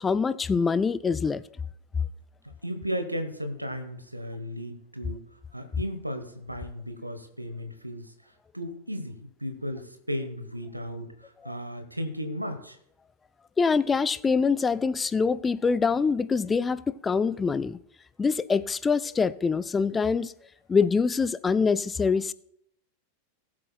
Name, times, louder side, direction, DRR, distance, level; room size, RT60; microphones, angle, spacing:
voice 1, 0.0-1.4 11.4-11.5 13.6-17.8 18.2-20.3 20.7-22.3, left 5 dB, 15° left, 0.4 m, -24 dB
voice 2, 2.6-5.2 5.5-12.8, equal, 85° right, 1.0 m, -35 dB
19.5 x 7.6 x 2.3 m
figure-of-eight pair, 90°, 0 cm